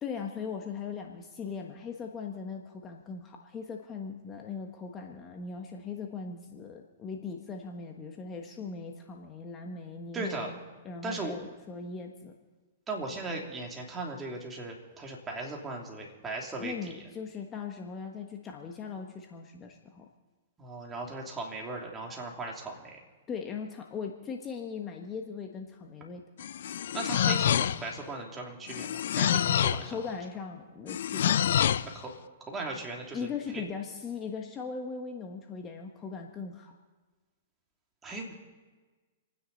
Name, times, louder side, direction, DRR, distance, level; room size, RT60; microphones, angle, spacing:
voice 1, 0.0-10.6 10.8-12.3 16.6-20.1 23.3-26.2 29.9-31.4 33.1-36.7, left 5 dB, 25° left, 2 dB, 1.3 m, -39 dB
voice 2, 10.1-10.5 11.0-11.4 12.9-17.1 20.6-23.0 26.9-30.0 31.9-32.1 32.4-33.6 38.0-38.3, right 2 dB, 15° right, -1 dB, 2.9 m, -38 dB
sound 1, 26.4-28.0 28.7-29.9 30.9-31.9, left 10 dB, 70° left, 0.5 m, -27 dB
29.0 x 9.8 x 4.1 m, 1.3 s
hypercardioid pair, 130°, 0 cm